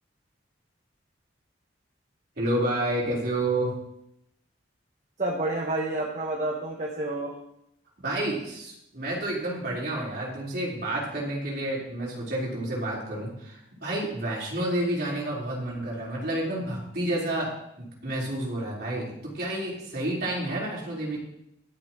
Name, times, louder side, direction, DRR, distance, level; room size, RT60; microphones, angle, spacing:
voice 1, 2.4-3.7 8.0-17.5 18.0-21.2, right 1 dB, 55° right, -5 dB, 4.2 m, -30 dB
voice 2, 5.2-7.3, right 2 dB, 40° right, -1 dB, 1.5 m, -29 dB
13.0 x 12.5 x 3.1 m, 0.79 s
head